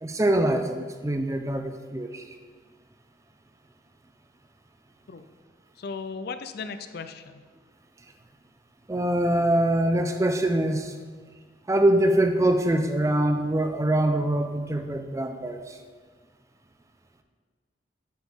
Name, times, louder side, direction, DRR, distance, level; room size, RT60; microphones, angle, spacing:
voice 1, 0.0-2.3 8.9-10.9 11.7-15.8, right 1 dB, 15° right, 6 dB, 0.5 m, -24 dB
voice 2, 5.8-7.4, left 5 dB, 60° left, 10 dB, 0.5 m, -36 dB
8.4 x 6.1 x 3.6 m, 1.5 s
head